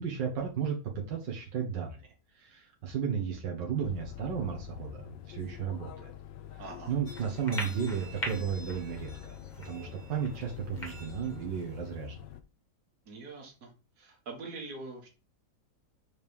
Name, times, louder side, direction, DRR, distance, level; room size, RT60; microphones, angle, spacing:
voice 1, 0.0-2.0 2.4-6.1 6.9-9.4 9.7-12.2, right 7 dB, 85° right, 0 dB, 2.0 m, -34 dB
sound 1, 3.8-12.4, left 11 dB, 80° left, 1.4 m, -46 dB
voice 2, 6.6-6.9 13.1-13.7 14.0-15.1, right 3 dB, 60° right, 1 dB, 2.2 m, -43 dB
sound 2, 7.1-12.1, left 1 dB, 25° left, 1.7 m, -43 dB
5.1 x 5.1 x 5.2 m, 0.33 s
omnidirectional pair, 1.9 m